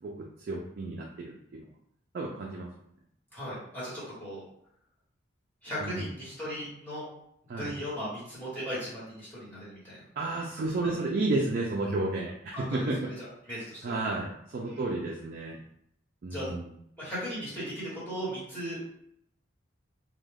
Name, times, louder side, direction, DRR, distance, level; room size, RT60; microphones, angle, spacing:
voice 1, 0.0-1.6 2.1-2.7 5.8-6.0 7.5-7.7 10.2-13.0 13.8-15.6 16.2-16.7, right 2 dB, 45° right, -1 dB, 0.3 m, -32 dB
voice 2, 3.3-4.4 5.6-7.1 7.6-10.0 10.8-11.0 12.5-12.9 13.2-14.0 14.6-14.9 16.3-16.5 17.0-18.8, equal, 10° left, -10 dB, 1.2 m, -37 dB
2.3 x 2.2 x 3.3 m, 0.72 s
head